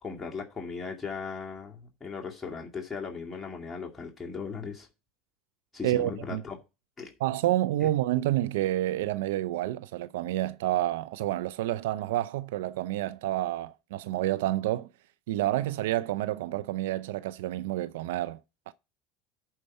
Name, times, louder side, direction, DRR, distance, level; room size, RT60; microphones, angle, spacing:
voice 1, 0.0-4.9 5.7-6.6 7.0-7.1 7.8-7.9, left 5 dB, 15° left, 2.3 m, -38 dB
voice 2, 5.8-6.4 7.2-14.9 15.3-18.4 18.7-18.8, right 14 dB, 75° right, 0.5 m, -29 dB
11.0 x 4.6 x 5.5 m
hypercardioid pair, 90°, 0 cm